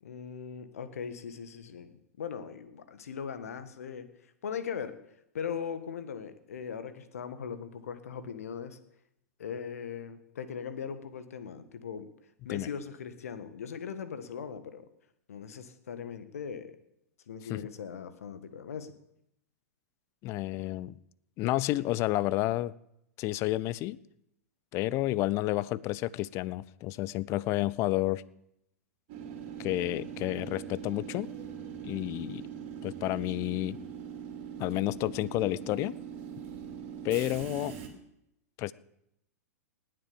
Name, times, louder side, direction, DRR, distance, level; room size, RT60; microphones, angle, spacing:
voice 1, 0.0-5.0 5.3-8.8 9.4-12.1 12.4-14.9 15.3-16.8 17.3-18.9, left 7 dB, 65° left, 11 dB, 1.5 m, -39 dB
voice 2, 20.2-21.0 21.4-22.7 23.2-24.0 24.7-28.2 29.6-31.3 31.8-32.5 32.8-33.8 34.6-36.0 37.0-37.8 38.6-38.7, left 17 dB, 35° left, 21 dB, 0.5 m, -30 dB
Train / Subway metro underground, 29.1-37.9, right 8 dB, 45° right, 2.8 m, -42 dB
19.5 x 7.6 x 7.0 m, 0.80 s
figure-of-eight pair, 100°, 9 cm